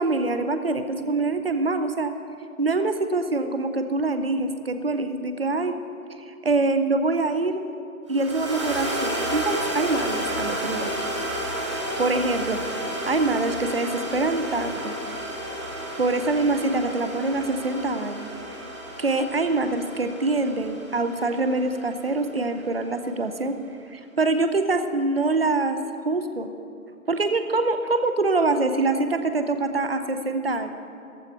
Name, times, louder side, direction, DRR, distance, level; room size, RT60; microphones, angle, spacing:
voice 1, 0.0-2.1 2.6-5.8 6.3-7.6 8.1-10.9 12.0-12.6 13.1-15.0 16.0-18.3 19.0-23.6 23.9-25.8 26.1-26.5 27.1-30.8, right 3 dB, 40° right, 9 dB, 0.7 m, -24 dB
sound 1, 8.1-22.5, right 1 dB, 20° right, 1.3 m, -32 dB
14.5 x 13.0 x 4.6 m, 2.6 s
figure-of-eight pair, 165°, 44 cm